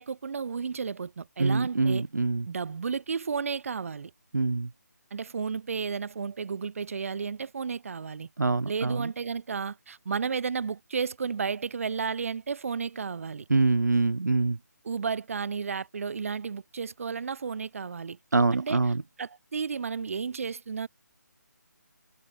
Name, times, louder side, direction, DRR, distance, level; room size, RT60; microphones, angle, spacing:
voice 1, 0.0-2.0 2.5-4.1 5.1-8.3 8.7-13.5 14.8-18.2 18.5-18.8 19.2-20.9, right 5 dB, 50° right, 3.0 m, -32 dB
voice 2, 1.4-2.5 4.3-4.7 8.4-9.1 13.5-14.6 18.3-19.0, right 3 dB, 75° right, 2.1 m, -25 dB
figure-of-eight pair, 155°, 10 cm